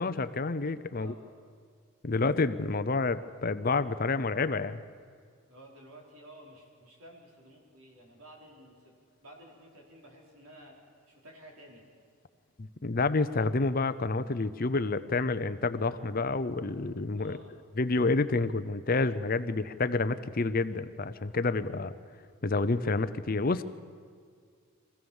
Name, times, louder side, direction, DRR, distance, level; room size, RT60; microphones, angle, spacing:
voice 1, 0.0-1.1 2.0-4.8 12.6-17.4 17.8-21.9 22.4-23.6, left 3 dB, 40° left, 13 dB, 0.6 m, -29 dB
voice 2, 0.9-1.3 5.5-8.9 9.2-10.8 11.1-11.8 17.1-17.5, right 1 dB, 75° right, -1 dB, 4.5 m, -53 dB
24.0 x 16.0 x 7.2 m, 2.1 s
head